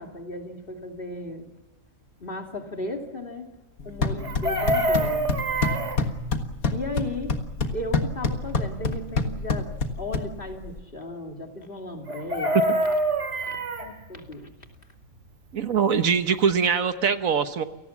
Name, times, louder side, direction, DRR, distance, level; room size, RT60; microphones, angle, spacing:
voice 1, 0.0-1.5 2.2-3.5 3.8-5.3 6.7-7.4 7.7-12.7 13.4-13.5 13.8-14.5, left 2 dB, 40° left, 3 dB, 2.9 m, -35 dB
sound 1, 3.8-10.8, left 3 dB, 90° left, 2.1 m, -28 dB
Chicken rooster, 4.2-6.0 12.1-13.9 16.1-16.2 16.5-16.7, right 1 dB, 60° right, 2.8 m, -25 dB
voice 2, 15.5-17.6, right 6 dB, 75° right, 9 dB, 1.6 m, -22 dB
29.0 x 18.5 x 7.2 m, 1.1 s
omnidirectional pair, 1.4 m